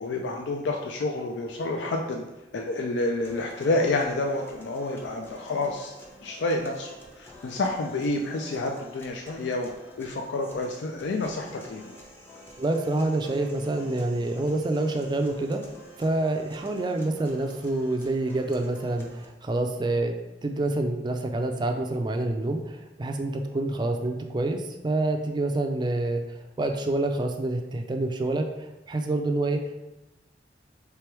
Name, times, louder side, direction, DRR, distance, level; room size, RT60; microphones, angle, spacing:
voice 1, 0.0-2.2 2.5-5.9 6.2-9.7 10.0-11.9, left 2 dB, 75° left, 2 dB, 0.4 m, -29 dB
sound 1, 3.2-19.2, equal, 15° left, 0.6 m, -49 dB
voice 2, 12.6-15.6 16.0-20.1 20.4-26.2 26.6-29.9, right 2 dB, 25° right, 4 dB, 0.4 m, -27 dB
3.4 x 3.4 x 4.5 m, 1.0 s
head